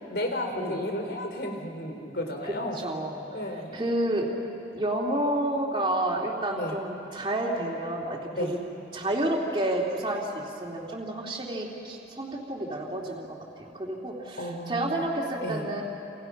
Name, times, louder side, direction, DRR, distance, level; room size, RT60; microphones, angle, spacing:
voice 1, 0.0-2.8 3.3-3.8 6.5-6.8 8.3-8.5 14.4-15.0 15.4-15.7, left 1 dB, 65° left, 3 dB, 3.6 m, -33 dB
voice 2, 2.8-3.2 3.7-4.3 4.7-8.6 8.9-13.3 13.6-15.8, right 1 dB, 25° right, -3 dB, 2.9 m, -30 dB
29.0 x 27.5 x 6.0 m, 3.0 s
head